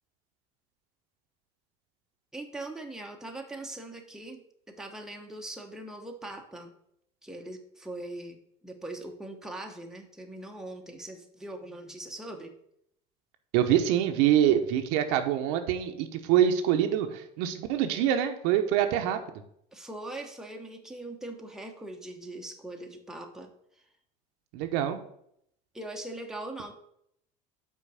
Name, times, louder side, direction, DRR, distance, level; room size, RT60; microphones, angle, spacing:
voice 1, 2.3-4.4 4.7-6.7 7.2-8.4 8.6-12.5 19.7-23.5 25.7-26.7, right 2 dB, 5° right, 2 dB, 0.9 m, -41 dB
voice 2, 13.5-19.2 24.5-25.0, right 10 dB, 75° right, 6 dB, 0.8 m, -25 dB
5.6 x 4.6 x 6.2 m, 0.73 s
supercardioid pair, 105°, 19 cm